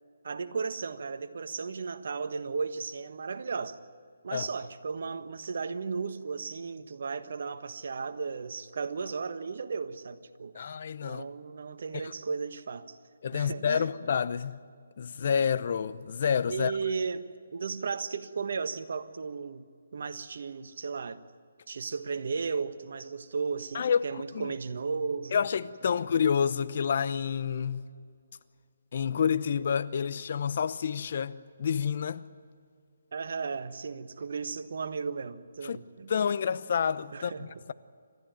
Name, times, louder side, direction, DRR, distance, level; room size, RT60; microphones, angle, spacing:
voice 1, 0.2-3.8 4.2-10.7 11.0-13.0 13.3-13.9 16.5-21.2 21.7-25.5 25.8-26.0 33.1-36.1 37.1-37.5, right 5 dB, 60° right, 1.4 m, -35 dB
voice 2, 10.5-11.2 13.2-14.6 15.0-16.7 23.7-24.0 24.3-24.5 25.3-27.8 28.9-32.2 35.6-35.8 36.1-37.7, left 7 dB, 50° left, 0.8 m, -28 dB
29.5 x 14.0 x 9.3 m
hypercardioid pair, 150°, 0 cm